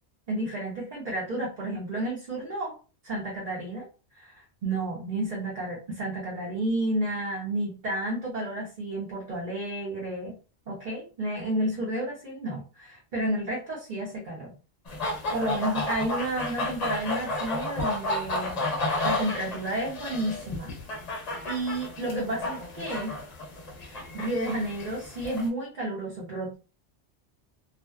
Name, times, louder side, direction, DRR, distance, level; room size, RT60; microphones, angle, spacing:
voice 1, 0.3-2.8 3.0-3.8 4.1-10.4 10.7-14.5 15.3-18.6 19.0-20.7 21.4-23.2 23.8-26.5, right 1 dB, 50° right, -5 dB, 0.8 m, -31 dB
sound 1, 14.9-25.5, left 2 dB, 45° left, 0.6 m, -32 dB
2.5 x 2.1 x 2.2 m, 0.34 s
omnidirectional pair, 1.2 m